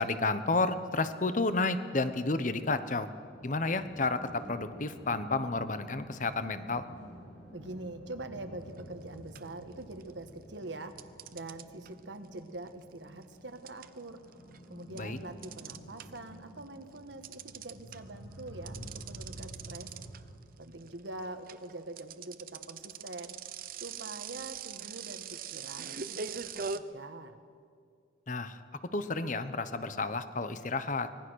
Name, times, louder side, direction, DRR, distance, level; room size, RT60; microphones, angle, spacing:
voice 1, 0.0-3.1 3.4-6.8 14.9-15.2 28.3-28.6 28.9-31.1, left 3 dB, 45° left, 11 dB, 1.1 m, -31 dB
sound 1, 3.2-20.4, equal, 85° left, 7.8 m, -50 dB
voice 2, 7.5-11.0 11.3-14.2 14.7-19.9 20.6-23.3 23.8-27.4, right 2 dB, 75° right, 8 dB, 1.6 m, -44 dB
sound 2, 8.8-9.0 9.4-10.3 11.0-16.4 16.7-26.8, right 6 dB, 50° right, 0.7 m, -42 dB
24.5 x 20.0 x 6.5 m, 2.2 s
head